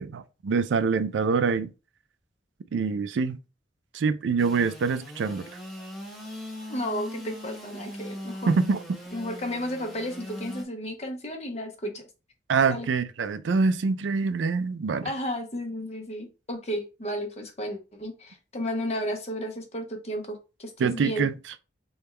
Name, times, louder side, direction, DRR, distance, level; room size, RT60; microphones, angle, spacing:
voice 1, 0.0-1.7 2.7-3.4 3.9-5.4 8.5-8.8 12.5-15.1 20.8-21.3, right 5 dB, 75° right, 0.4 m, -25 dB
Engine / Sawing, 4.4-10.6, left 1 dB, ahead, 0.8 m, -40 dB
voice 2, 6.7-8.5 9.1-12.0 12.7-12.9 15.0-21.3, equal, 35° left, 0.9 m, -33 dB
3.5 x 2.3 x 4.2 m
head